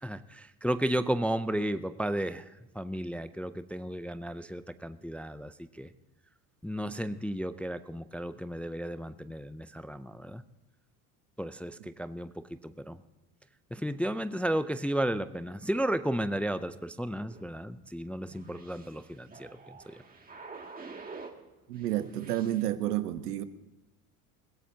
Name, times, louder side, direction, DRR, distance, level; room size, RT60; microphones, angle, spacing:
voice 1, 0.0-5.9 6.6-10.4 11.4-13.0 13.7-20.0, right 1 dB, 5° left, 12 dB, 0.4 m, -33 dB
sound 1, 17.3-21.4 21.7-22.6, right 4 dB, 20° right, 2.2 m, -48 dB
voice 2, 21.7-23.4, right 13 dB, 90° right, 11 dB, 1.1 m, -30 dB
22.0 x 16.5 x 2.8 m, 1.1 s
hypercardioid pair, 85°, 46 cm